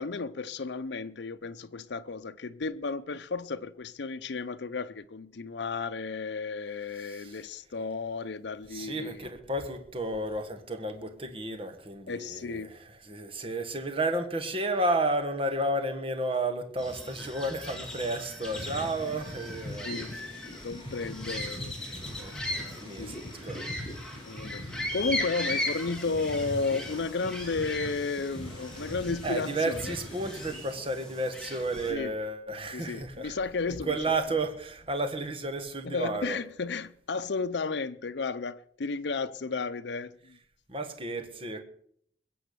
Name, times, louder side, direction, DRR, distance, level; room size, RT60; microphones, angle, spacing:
voice 1, 0.0-9.3 12.1-12.7 18.7-18.9 19.8-20.1 20.6-22.4 22.8-23.2 24.2-30.0 31.9-32.1 32.7-33.9 35.8-40.4, left 4 dB, 75° left, 0.6 m, -33 dB
voice 2, 7.0-7.4 8.7-19.9 22.2-23.1 23.4-23.7 29.2-33.4 33.7-36.4 40.7-41.6, right 2 dB, 30° right, 1.6 m, -32 dB
sound 1, 16.8-31.9, left 1 dB, 5° left, 2.6 m, -38 dB
sound 2, 18.4-30.6, equal, 30° left, 7.9 m, -42 dB
21.5 x 7.8 x 6.8 m
head